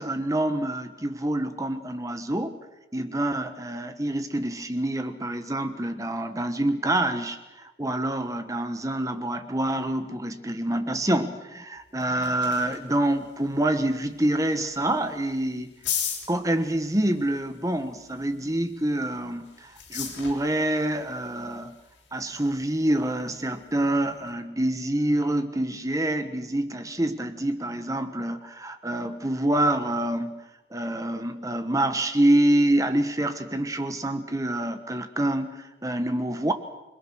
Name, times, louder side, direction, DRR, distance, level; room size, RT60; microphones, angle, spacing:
voice 1, 0.0-2.6 2.9-15.7 16.3-21.8 22.1-30.4 30.7-36.5, right 1 dB, 15° right, 9 dB, 1.3 m, -26 dB
sound 1, 11.8-24.3, left 8 dB, 75° left, 6.8 m, -40 dB
28.5 x 22.0 x 6.3 m, 1.0 s
head